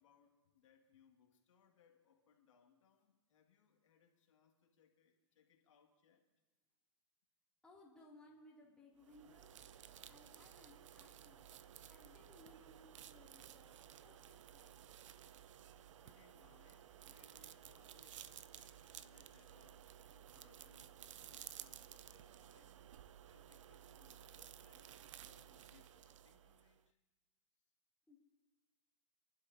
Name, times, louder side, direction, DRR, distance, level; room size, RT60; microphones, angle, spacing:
voice 1, 0.0-6.3 15.2-27.0, left 8 dB, 75° left, 2.0 m, -72 dB
voice 2, 7.6-9.7 10.1-11.6 11.9-14.8 28.1-28.2, left 1 dB, 5° left, 2.7 m, -64 dB
sound 1, 9.0-26.8, right 10 dB, 75° right, 0.5 m, -56 dB
28.0 x 11.5 x 2.8 m
hypercardioid pair, 145°, 16 cm